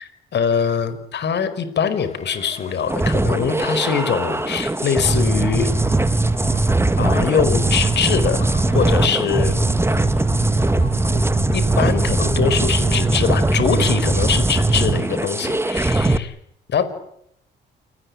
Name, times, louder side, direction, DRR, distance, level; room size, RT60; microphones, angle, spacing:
voice 1, 0.0-5.7 7.0-9.6 11.5-16.3 16.7-16.8, left 7 dB, 60° left, 12 dB, 5.2 m, -23 dB
sound 1, 1.9-15.3, left 4 dB, 35° left, 5.9 m, -41 dB
sound 2, 2.9-16.2, right 2 dB, 10° right, 1.8 m, -20 dB
28.5 x 20.0 x 9.8 m, 0.75 s
cardioid pair, 90°, 20 cm